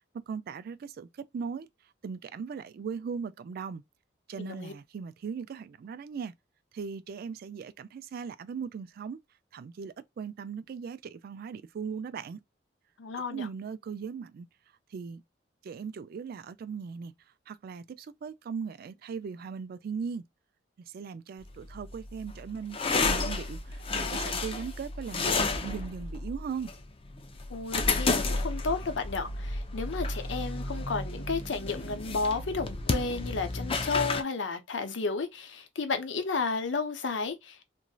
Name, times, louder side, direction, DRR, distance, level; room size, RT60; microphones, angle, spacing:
voice 1, 0.3-1.7 2.0-3.8 4.3-6.3 6.7-9.2 9.5-12.4 13.3-14.5 14.9-15.2 15.6-17.1 17.5-20.3 20.8-26.7, right 6 dB, 55° right, 0.3 m, -38 dB
voice 2, 4.4-4.7 13.0-13.5 27.5-37.7, left 4 dB, 80° left, 0.7 m, -32 dB
sound 1, 21.4-34.2, left 3 dB, 30° left, 0.5 m, -32 dB
3.0 x 2.6 x 2.2 m
head